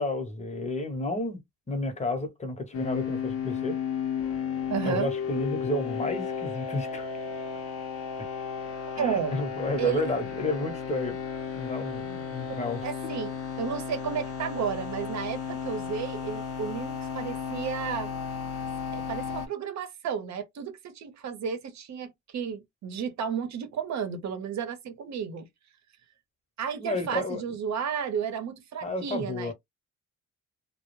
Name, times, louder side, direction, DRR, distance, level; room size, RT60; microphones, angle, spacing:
voice 1, 0.0-1.4 1.7-3.8 4.8-7.1 8.9-11.2 11.5-12.8 26.7-27.4 28.8-29.5, left 2 dB, 20° left, 0.9 m, -31 dB
sound 1, 2.7-19.5, left 7 dB, 50° left, 0.7 m, -34 dB
voice 2, 4.7-5.1 9.0-9.4 9.8-10.0 12.8-13.3 13.6-18.1 18.9-25.5 26.6-29.5, right 7 dB, 65° right, 0.8 m, -32 dB
2.2 x 2.1 x 3.0 m
cardioid pair, 90°, 30 cm